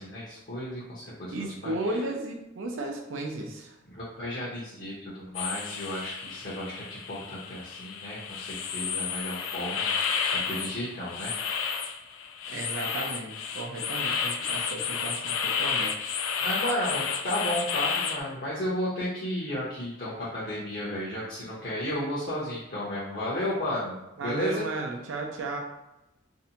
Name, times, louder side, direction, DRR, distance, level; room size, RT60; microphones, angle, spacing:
voice 1, 0.0-1.9 3.9-11.3 16.4-24.0 24.2-24.6, left 1 dB, 50° left, -7 dB, 0.7 m, -33 dB
voice 2, 1.3-3.8 10.4-10.8 12.5-15.9 24.2-25.6, right 2 dB, 75° right, 1 dB, 0.5 m, -34 dB
sound 1, 5.3-18.2, left 6 dB, 85° left, 0.3 m, -31 dB
2.6 x 2.1 x 2.7 m, 0.91 s
head